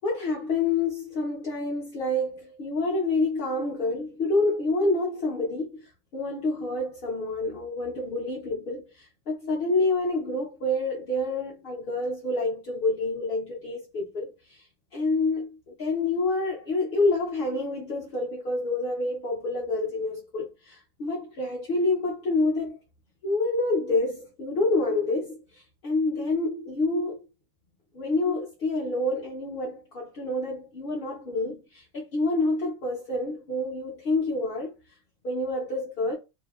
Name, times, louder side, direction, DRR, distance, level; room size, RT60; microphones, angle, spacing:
voice 1, 0.0-14.7 14.9-22.8 23.2-27.2 27.9-34.7 35.2-36.2, left 2 dB, 55° left, 0.7 m, -28 dB
2.7 x 2.0 x 2.3 m
omnidirectional pair, 1.4 m